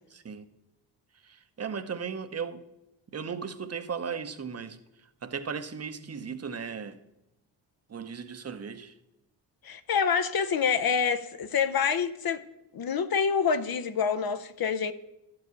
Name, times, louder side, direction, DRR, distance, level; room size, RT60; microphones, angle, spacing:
voice 1, 0.1-0.4 1.2-2.6 3.1-7.0 7.9-8.9, right 6 dB, 35° right, 0.9 m, -36 dB
voice 2, 9.6-12.4 12.7-14.9, left 6 dB, 50° left, 0.7 m, -27 dB
12.0 x 4.9 x 8.2 m
cardioid pair, 75°, 45 cm